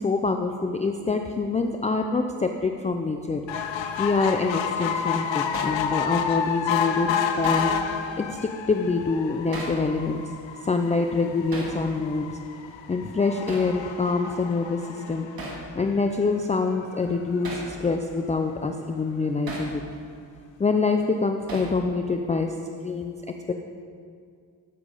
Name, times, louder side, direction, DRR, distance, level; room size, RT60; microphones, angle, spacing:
voice 1, 0.0-3.4 4.0-10.2 10.6-12.3 12.9-15.3 15.8-19.8 20.6-22.5 22.8-23.5, left 4 dB, 15° left, 5 dB, 0.4 m, -25 dB
sound 1, 3.5-16.1 16.6-16.7 17.0-17.1 17.4-17.5, left 7 dB, 75° left, 0.8 m, -30 dB
Hammer, 5.5-5.8 7.4-7.7 9.5-9.8 11.5-11.8 13.5-13.7 15.4-15.6 17.4-17.7 19.5-19.7 21.5-21.8, right 2 dB, 50° right, 2.3 m, -35 dB
13.0 x 7.4 x 4.9 m, 2.2 s
cardioid pair, 105°, 45 cm